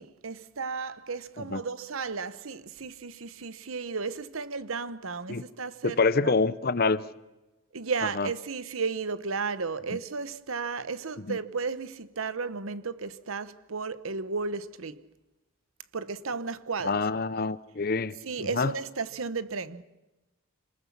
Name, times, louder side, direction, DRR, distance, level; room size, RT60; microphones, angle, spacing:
voice 1, 0.0-6.4 7.7-15.0 15.9-17.0 18.2-19.8, right 4 dB, 75° right, 1.0 m, -34 dB
voice 2, 5.8-7.0 8.2-8.3 11.3-11.4 16.8-18.2 18.5-18.7, left 4 dB, 45° left, 0.7 m, -26 dB
26.0 x 20.0 x 7.2 m
head